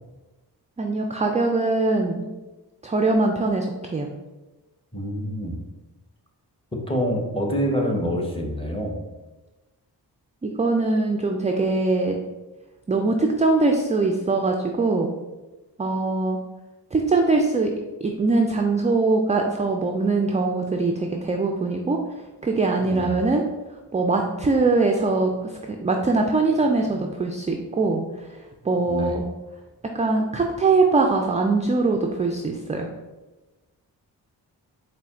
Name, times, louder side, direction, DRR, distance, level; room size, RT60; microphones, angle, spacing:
voice 1, 0.8-2.3 2.8-4.1 10.4-12.2 12.9-15.1 15.8-16.4 16.9-17.7 18.0-22.0 22.4-23.4 23.9-28.0 28.6-29.2 29.9-32.9, right 3 dB, 20° right, 3 dB, 0.3 m, -22 dB
voice 2, 4.9-5.6 6.9-9.0 22.8-23.2 28.9-29.2, equal, 15° left, 1 dB, 0.9 m, -26 dB
4.2 x 2.2 x 3.6 m, 1.1 s
cardioid pair, 45°, 43 cm